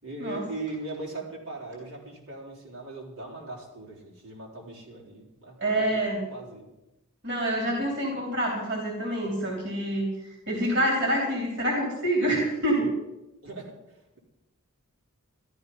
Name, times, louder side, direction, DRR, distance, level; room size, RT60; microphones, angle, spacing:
voice 1, 0.0-5.9 6.3-6.7 13.4-14.2, right 2 dB, 75° right, -3 dB, 4.1 m, -39 dB
voice 2, 5.6-6.2 7.2-10.1 10.5-12.9, right 1 dB, 55° right, 0 dB, 3.4 m, -26 dB
13.5 x 12.5 x 5.5 m, 0.93 s
head